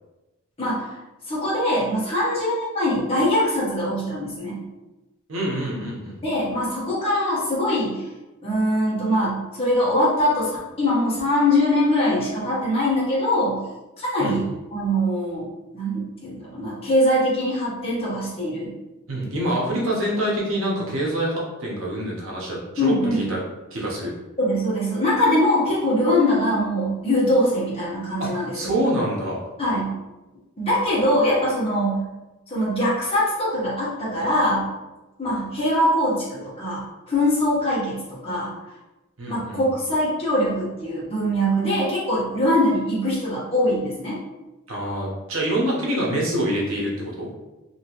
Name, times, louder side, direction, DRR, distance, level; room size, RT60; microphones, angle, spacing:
voice 1, 1.3-4.6 6.2-8.0 8.4-13.6 14.0-15.4 15.7-18.7 22.8-23.3 24.4-28.5 29.6-29.9 30.6-32.0 32.5-34.7 35.2-38.5 39.3-44.2, left 1 dB, 30° left, -7 dB, 1.1 m, -22 dB
voice 2, 5.3-6.2 14.2-14.3 19.1-23.4 23.7-24.1 28.2-29.4 39.2-39.6 44.7-47.3, right 1 dB, 75° right, -3 dB, 0.9 m, -26 dB
2.8 x 2.8 x 2.9 m, 1.1 s
head